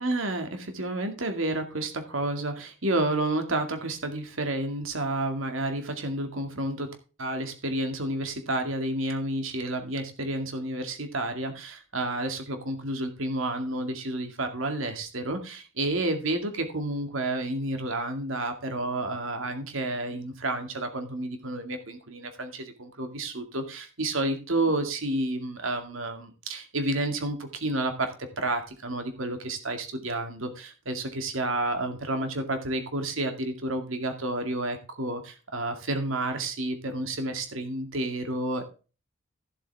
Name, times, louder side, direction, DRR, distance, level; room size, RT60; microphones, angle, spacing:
voice 1, 0.0-38.7, right 2 dB, 85° right, 6 dB, 2.3 m, -30 dB
15.0 x 7.6 x 3.5 m, 0.33 s
head